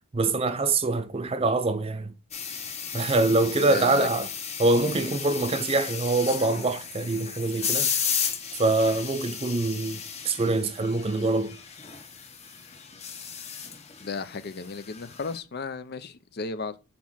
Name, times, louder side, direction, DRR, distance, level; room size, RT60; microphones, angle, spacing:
voice 1, 0.1-2.1 2.9-4.3 4.6-7.9 8.6-11.6, right 2 dB, 25° right, 0.5 m, -24 dB
sound 1, 2.3-15.4, left 7 dB, 30° left, 0.9 m, -34 dB
voice 2, 3.7-4.1 14.0-16.8, left 4 dB, 45° left, 0.5 m, -34 dB
5.9 x 4.2 x 6.1 m
head